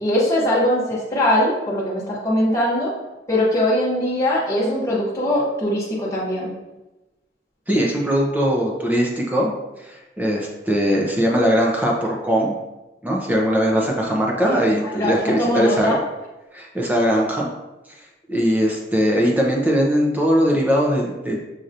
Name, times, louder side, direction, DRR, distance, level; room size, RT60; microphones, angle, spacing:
voice 1, 0.0-2.9 3.3-6.5 14.4-16.0, left 1 dB, 15° left, -8 dB, 0.9 m, -21 dB
voice 2, 7.7-9.5 9.8-12.6 13.0-15.9 16.5-17.5 18.3-21.4, equal, 10° right, -2 dB, 0.7 m, -20 dB
6.5 x 2.9 x 2.5 m, 1.0 s
head